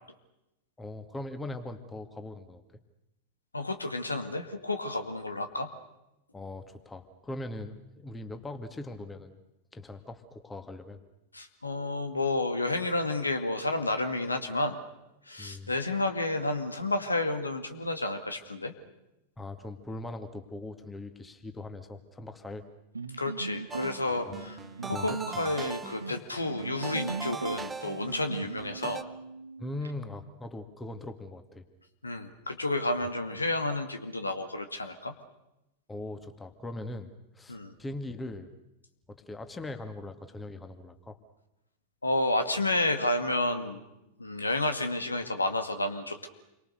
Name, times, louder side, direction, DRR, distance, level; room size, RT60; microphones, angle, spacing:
voice 1, 0.8-2.6 6.3-9.4 9.7-11.0 15.4-15.7 19.4-22.7 24.2-24.6 24.9-25.2 29.6-31.6 33.0-33.1 35.9-38.5 39.1-41.2, left 2 dB, 10° left, 7 dB, 2.3 m, -40 dB
voice 2, 3.5-5.7 11.3-14.8 15.3-18.7 23.2-24.6 24.9-29.0 32.0-35.1 37.5-37.7 42.0-43.8 44.2-46.3, left 2 dB, 80° left, 7 dB, 2.2 m, -30 dB
sound 1, 22.9-29.9, right 4 dB, 80° right, 1.5 m, -39 dB
sound 2, 23.7-29.0, right 5 dB, 15° right, 1.0 m, -41 dB
29.5 x 24.0 x 6.7 m, 0.92 s
figure-of-eight pair, 90°, 0 cm